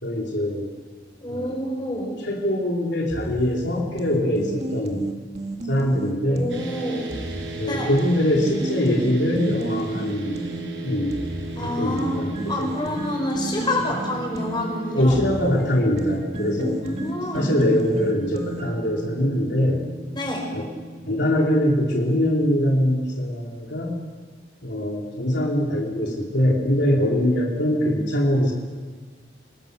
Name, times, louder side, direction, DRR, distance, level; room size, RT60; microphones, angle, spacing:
voice 1, 0.0-0.7 1.3-1.5 2.2-5.1 5.7-6.5 7.6-10.4 10.8-11.2 11.6-12.7 14.9-16.8 17.3-19.8 20.5-20.7 21.1-23.9 24.6-28.5, left 1 dB, 70° left, -2 dB, 3.2 m, -22 dB
voice 2, 1.2-2.2 6.3-7.1 7.7-7.9 11.6-15.1 16.8-17.4 20.1-20.4, left 1 dB, 25° left, 0 dB, 6.0 m, -28 dB
sound 1, 3.1-6.6 7.1-10.6 11.1-18.9, right 2 dB, 35° right, 1.9 m, -34 dB
sound 2, 6.5-22.9, right 2 dB, 85° right, 5.5 m, -36 dB
28.0 x 20.0 x 6.8 m, 1.5 s
head